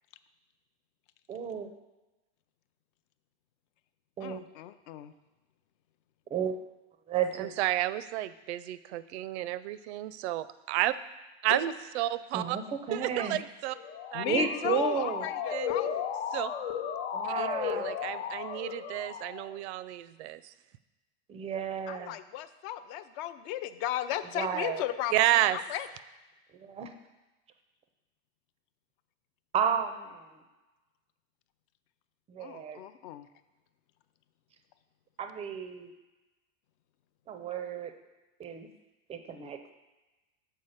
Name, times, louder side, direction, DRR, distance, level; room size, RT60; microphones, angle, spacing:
voice 1, 1.3-1.7 4.2-4.4 6.3-6.6 7.1-7.5 12.3-13.4 14.2-15.3 17.1-17.9 21.3-22.1 24.4-24.8 26.6-26.9 29.5-30.4 32.3-32.8 35.2-35.9 37.3-37.9 38.4-38.7 39.1-39.6, right 7 dB, 20° right, 7 dB, 0.4 m, -32 dB
voice 2, 4.2-5.1 11.5-11.6 14.1-16.0 21.9-25.9 32.4-33.3, left 12 dB, 55° left, 12 dB, 0.5 m, -35 dB
voice 3, 7.4-10.9 11.4-12.6 12.9-13.8 14.1-14.3 15.5-15.7 16.3-16.5 17.4-20.5 25.1-25.6, right 15 dB, 75° right, 15 dB, 0.5 m, -31 dB
Motor vehicle (road) / Siren, 13.7-19.6, left 8 dB, 80° left, 0.8 m, -35 dB
6.5 x 4.6 x 5.6 m, 1.1 s
supercardioid pair, 140°, 34 cm